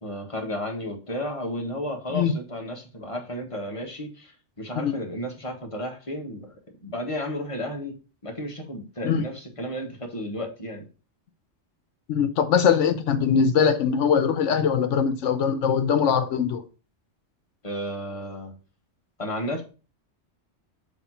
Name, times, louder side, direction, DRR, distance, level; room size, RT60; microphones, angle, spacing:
voice 1, 0.0-6.5 6.8-7.9 8.2-10.9 17.6-18.5 19.2-19.6, equal, 30° left, 1.5 m, -33 dB
voice 2, 12.1-16.6, left 7 dB, 85° left, 1.1 m, -22 dB
7.2 x 3.2 x 5.6 m
omnidirectional pair, 1.2 m